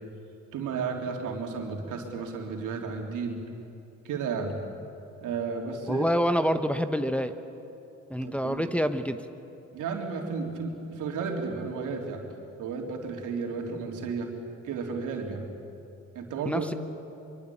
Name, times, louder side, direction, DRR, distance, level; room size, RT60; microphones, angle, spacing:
voice 1, 0.5-3.4 4.0-4.6 5.2-6.1 8.2-8.7 9.7-12.2 12.6-14.3 14.6-15.4 16.1-16.7, right 5 dB, 85° right, 1 dB, 3.7 m, -33 dB
voice 2, 5.9-7.3 8.1-9.2 16.4-16.7, equal, 5° left, 7 dB, 1.2 m, -27 dB
24.5 x 24.0 x 8.7 m, 2.8 s
cardioid pair, 90°, 30 cm